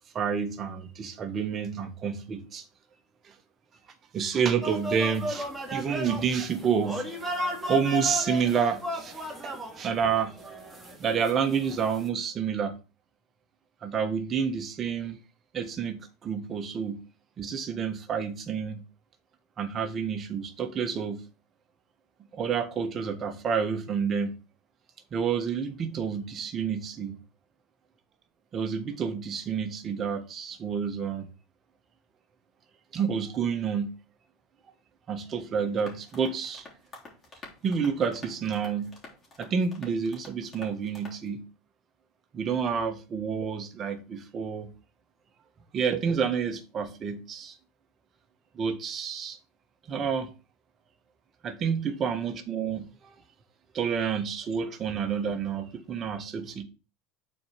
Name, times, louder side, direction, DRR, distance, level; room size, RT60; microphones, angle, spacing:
voice 1, 0.1-2.6 3.2-3.3 4.1-7.2 7.7-10.4 11.0-12.7 13.8-15.2 15.5-17.0 17.4-18.8 19.6-21.2 22.3-24.3 25.1-27.1 28.5-31.3 32.9-33.9 35.1-36.7 37.6-38.9 39.4-41.4 42.3-44.7 45.7-47.6 48.5-49.4 49.9-50.3 51.4-53.1 53.7-56.6, right 6 dB, 35° right, 1.4 m, -29 dB
sound 1, 4.6-12.1, equal, 10° right, 2.2 m, -34 dB
sound 2, 35.8-41.3, left 3 dB, 30° left, 3.2 m, -49 dB
6.9 x 4.5 x 5.1 m
hypercardioid pair, 85°, 0 cm